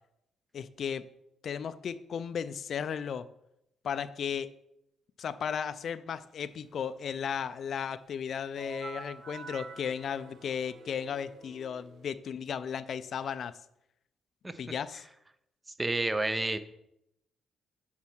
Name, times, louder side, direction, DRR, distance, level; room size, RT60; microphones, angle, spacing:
voice 1, 0.5-1.1 1.4-3.3 3.8-4.5 5.2-13.5 14.6-15.0, left 7 dB, 60° left, 14 dB, 0.4 m, -35 dB
sound 1, 8.6-12.2, right 4 dB, 60° right, 0.9 m, -47 dB
voice 2, 15.8-16.6, right 2 dB, 15° right, 12 dB, 0.6 m, -29 dB
7.2 x 4.3 x 6.1 m, 0.80 s
cardioid pair, 90°, 0 cm